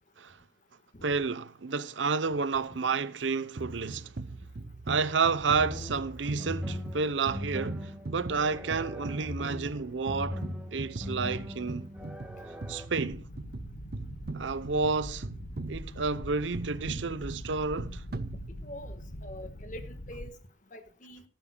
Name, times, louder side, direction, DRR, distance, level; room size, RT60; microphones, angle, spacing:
voice 1, 1.0-4.1 4.9-10.4 10.7-11.9 12.7-13.2 14.3-15.3 15.7-18.0, right 4 dB, 85° right, 0.8 m, -30 dB
sound 1, 3.6-18.9, right 2 dB, 55° right, 0.7 m, -40 dB
sound 2, 5.5-12.9, left 1 dB, 5° right, 1.7 m, -40 dB
sound 3, 13.0-20.3, left 1 dB, 65° left, 1.2 m, -43 dB
voice 2, 18.6-20.3 20.7-21.2, equal, 45° left, 1.4 m, -45 dB
18.0 x 10.5 x 2.3 m
head